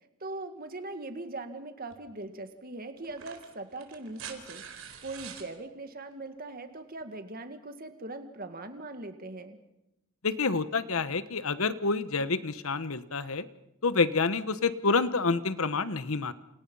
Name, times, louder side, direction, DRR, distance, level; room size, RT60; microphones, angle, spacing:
voice 1, 0.2-4.6 5.0-9.6, right 2 dB, 45° right, 7 dB, 2.0 m, -40 dB
sound 1, 1.9-2.0 3.0-5.5 7.0-7.1, right 7 dB, 70° right, 4.1 m, -45 dB
voice 2, 10.2-13.4 13.8-16.3, left 4 dB, 75° left, 13 dB, 1.2 m, -28 dB
28.5 x 28.5 x 5.6 m, 0.90 s
head